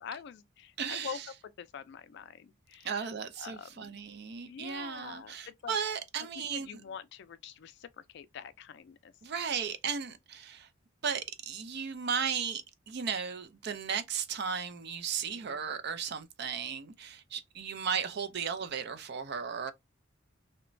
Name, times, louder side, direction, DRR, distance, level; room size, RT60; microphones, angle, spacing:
voice 1, 0.0-1.2 1.6-3.1 3.4-4.0 4.4-5.8 6.5-9.1 15.2-15.6, left 7 dB, 60° left, 0.3 m, -45 dB
voice 2, 0.8-1.3 2.8-6.8 9.2-10.7 11.0-19.7, right 6 dB, 55° right, 0.4 m, -35 dB
3.0 x 2.1 x 2.5 m
head